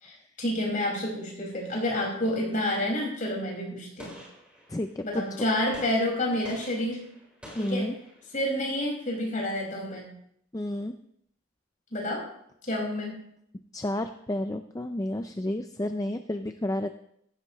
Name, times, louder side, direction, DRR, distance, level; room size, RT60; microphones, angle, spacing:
voice 1, 0.0-4.2 5.0-7.0 7.6-7.9 8.3-10.1 11.9-12.3 12.6-13.2, left 1 dB, 40° left, -2 dB, 5.6 m, -29 dB
Gunshot gunfire, 4.0-5.0 5.7-8.5, equal, 5° right, 4.5 m, -48 dB
voice 2, 4.7-5.0 7.6-7.9 10.5-10.9 13.7-16.9, left 1 dB, 15° left, 7 dB, 0.5 m, -31 dB
15.5 x 15.0 x 3.2 m, 0.72 s
head